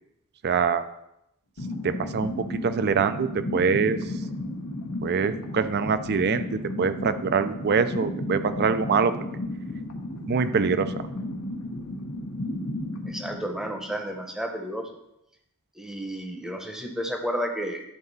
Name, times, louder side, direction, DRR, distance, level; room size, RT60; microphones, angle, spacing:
voice 1, 0.4-0.8 1.8-4.0 5.0-9.2 10.2-10.9, right 5 dB, 45° right, 11 dB, 0.4 m, -24 dB
sound 1, 1.6-14.2, left 1 dB, 80° left, 1.1 m, -34 dB
voice 2, 13.0-14.9 15.8-17.8, equal, ahead, 3 dB, 0.8 m, -32 dB
11.0 x 3.9 x 4.0 m, 0.85 s
head